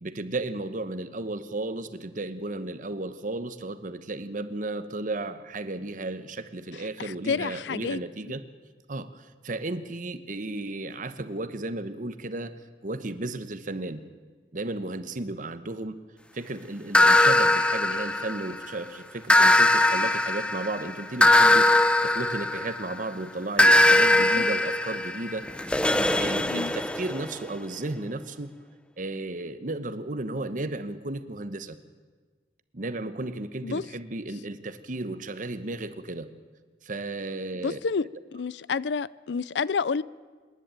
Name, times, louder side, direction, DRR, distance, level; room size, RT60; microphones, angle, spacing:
voice 1, 0.0-8.4 8.9-12.6 12.8-14.0 14.5-16.0 16.3-25.5 25.9-28.5 29.0-31.8 32.7-36.3 36.8-37.8, right 2 dB, 50° right, 1.1 m, -34 dB
voice 2, 7.0-8.0 24.2-24.4 26.5-26.7 33.6-33.8 37.6-38.1 38.3-40.0, left 5 dB, 75° left, 0.5 m, -29 dB
sound 1, 16.9-18.7 19.3-23.0 23.6-27.3, left 1 dB, 5° left, 0.6 m, -21 dB
26.5 x 11.0 x 8.9 m
head